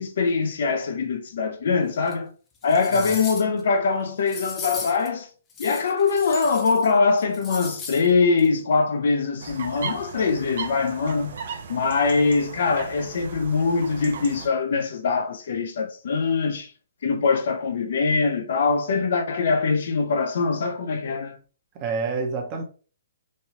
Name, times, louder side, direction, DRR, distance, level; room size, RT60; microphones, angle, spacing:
voice 1, 0.0-2.3 2.6-5.3 5.6-11.4 11.7-16.7 17.0-21.4, left 4 dB, 65° left, 0.6 m, -23 dB
sound 1, 2.1-2.2 2.6-3.6 4.3-5.1 5.5-6.9 7.2-8.1 8.4-8.5, left 4 dB, 20° left, 0.6 m, -37 dB
sound 2, 9.4-14.5, right 5 dB, 65° right, 0.6 m, -37 dB
voice 2, 21.7-22.6, right 4 dB, 30° right, 0.8 m, -28 dB
3.2 x 2.2 x 2.8 m
hypercardioid pair, 135°, 0 cm